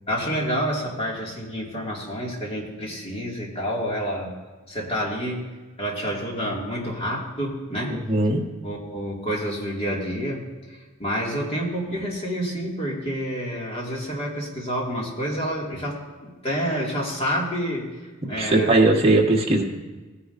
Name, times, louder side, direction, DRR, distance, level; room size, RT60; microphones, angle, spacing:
voice 1, 0.1-4.3 4.7-5.4 5.8-8.0 8.6-18.8, equal, 30° left, -2 dB, 2.2 m, -28 dB
voice 2, 7.9-8.4 18.4-19.6, right 2 dB, 30° right, 0 dB, 1.4 m, -19 dB
17.0 x 9.7 x 2.6 m, 1.3 s
head